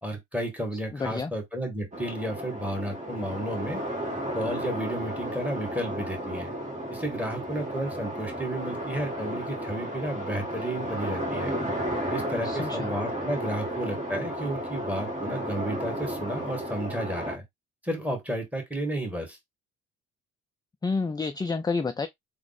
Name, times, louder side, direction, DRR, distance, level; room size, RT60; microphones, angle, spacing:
voice 1, 0.0-3.8 4.3-6.5 6.9-11.6 12.1-17.4 17.8-19.4, right 1 dB, 5° right, 1.7 m, -32 dB
voice 2, 0.9-1.3 12.4-12.9 20.8-22.1, left 4 dB, 15° left, 0.3 m, -29 dB
sound 1, 1.9-17.4, right 1 dB, 25° right, 1.5 m, -33 dB
3.5 x 2.1 x 4.0 m
cardioid pair, 90°, 30 cm